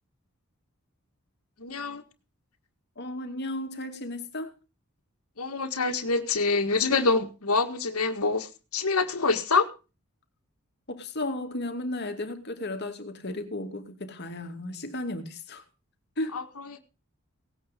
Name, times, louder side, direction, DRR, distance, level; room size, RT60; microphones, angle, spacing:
voice 1, 1.6-2.0 5.4-9.7 16.3-16.8, left 4 dB, 85° left, 1.8 m, -26 dB
voice 2, 3.0-4.5 10.9-15.6 16.2-16.4, left 1 dB, 50° left, 2.4 m, -34 dB
18.0 x 8.8 x 5.2 m
head